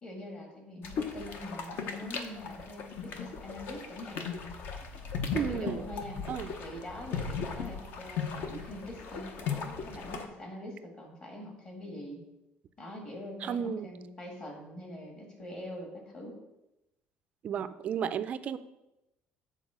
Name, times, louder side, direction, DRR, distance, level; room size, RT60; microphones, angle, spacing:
voice 1, 0.0-4.3 5.4-6.2 6.6-12.2 12.8-16.3, left 1 dB, 25° left, 1 dB, 1.5 m, -44 dB
sound 1, 0.8-10.3, left 5 dB, 55° left, 0.8 m, -37 dB
voice 2, 5.3-5.8 6.3-6.5 8.5-8.6 13.4-13.9 17.4-18.6, right 8 dB, 35° right, 12 dB, 0.3 m, -33 dB
7.2 x 4.2 x 6.1 m, 0.94 s
cardioid pair, 175°, 4 cm